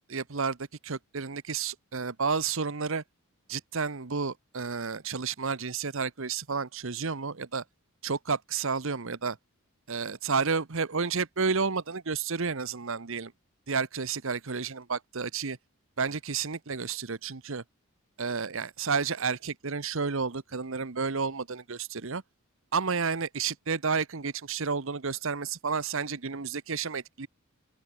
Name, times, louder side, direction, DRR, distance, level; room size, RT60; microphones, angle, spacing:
voice 1, 0.1-0.6 0.8-3.0 3.5-7.6 8.0-9.4 9.9-13.3 13.7-15.6 16.0-17.6 18.2-22.2 22.7-27.3, right 5 dB, 65° right, 1.0 m, -31 dB
open air
head